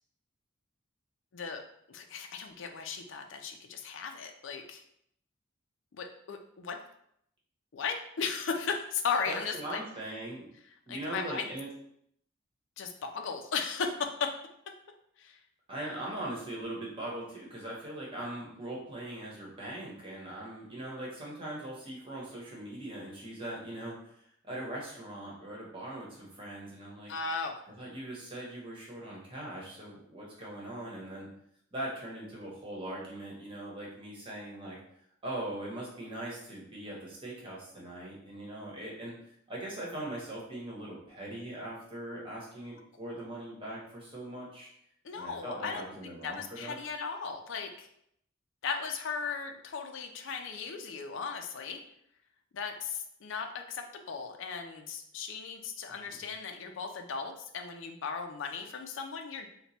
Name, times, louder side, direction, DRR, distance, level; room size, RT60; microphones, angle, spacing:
voice 1, 1.9-4.8 6.0-6.8 7.7-9.8 10.9-11.5 12.8-14.3 15.2-15.4 27.1-27.6 45.0-47.9 48.6-51.8 52.5-59.5, left 5 dB, 65° left, 5 dB, 0.4 m, -36 dB
voice 2, 9.3-10.5 10.9-11.7 15.7-27.1 27.8-31.3 31.7-34.8 35.2-39.2 39.5-44.7 45.1-46.8 56.1-56.2, right 1 dB, 25° right, -4 dB, 1.0 m, -41 dB
3.0 x 2.2 x 4.1 m, 0.72 s
head